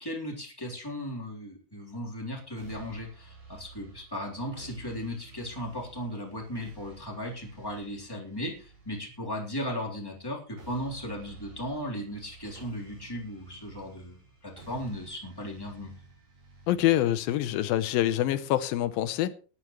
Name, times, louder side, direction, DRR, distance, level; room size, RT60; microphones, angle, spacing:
voice 1, 0.0-14.1 14.4-15.9, equal, 5° left, 3.1 m, -36 dB
sound 1, 2.6-18.6, right 4 dB, 70° right, 7.3 m, -52 dB
voice 2, 16.7-19.3, left 13 dB, 80° left, 2.5 m, -26 dB
19.0 x 11.5 x 3.1 m
omnidirectional pair, 4.2 m